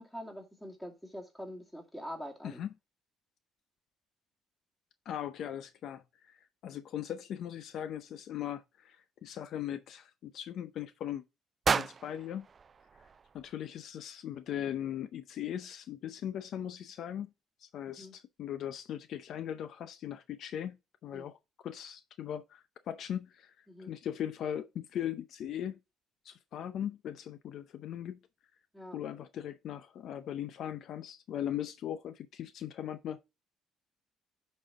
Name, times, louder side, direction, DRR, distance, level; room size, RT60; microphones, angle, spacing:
voice 1, 0.0-2.6 18.0-18.1 21.1-21.3 23.7-23.9 28.7-29.0, equal, 5° left, 2.6 m, -44 dB
voice 2, 5.1-11.2 11.7-12.5 13.3-17.3 17.6-20.8 21.0-25.8 26.2-28.2 28.9-33.2, left 10 dB, 65° left, 0.6 m, -39 dB
sound 1, 11.6-13.8, right 5 dB, 35° right, 0.4 m, -34 dB
10.0 x 4.2 x 3.6 m
cardioid pair, 105°, 0 cm